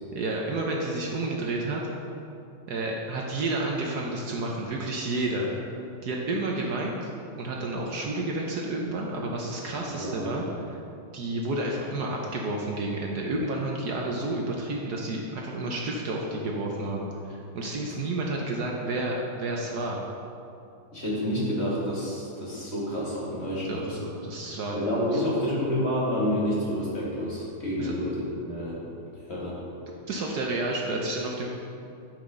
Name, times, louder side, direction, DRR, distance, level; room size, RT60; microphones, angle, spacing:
voice 1, 0.1-1.8 2.7-5.5 6.0-7.1 7.4-10.8 11.1-20.0 23.6-24.8 25.1-25.6 27.8-27.9 30.1-31.5, right 2 dB, 65° right, -1 dB, 1.3 m, -30 dB
voice 2, 9.8-10.3 20.9-24.0 24.7-28.8 29.3-29.6, equal, 35° left, -7 dB, 2.3 m, -29 dB
12.0 x 5.8 x 3.8 m, 2.6 s
omnidirectional pair, 2.0 m